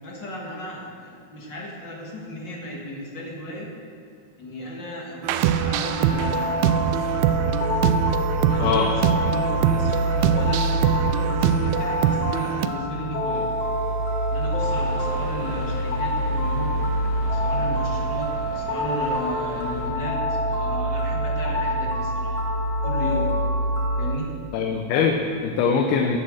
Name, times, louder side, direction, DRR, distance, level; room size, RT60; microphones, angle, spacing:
voice 1, 0.0-3.7 4.4-7.1 8.5-13.5 14.3-16.7 17.2-22.4 22.8-23.3 24.0-24.3, equal, 40° left, -3 dB, 1.7 m, -35 dB
sound 1, 5.2-12.7, right 9 dB, 85° right, 2.5 m, -23 dB
sound 2, 5.8-24.2, equal, 60° left, 1.7 m, -26 dB
voice 2, 8.6-8.9 24.5-26.2, left 6 dB, 80° left, 2 dB, 2.6 m, -22 dB
sound 3, 14.6-19.9, right 1 dB, 60° right, 3.8 m, -39 dB
14.5 x 7.4 x 6.4 m, 2.4 s
omnidirectional pair, 4.6 m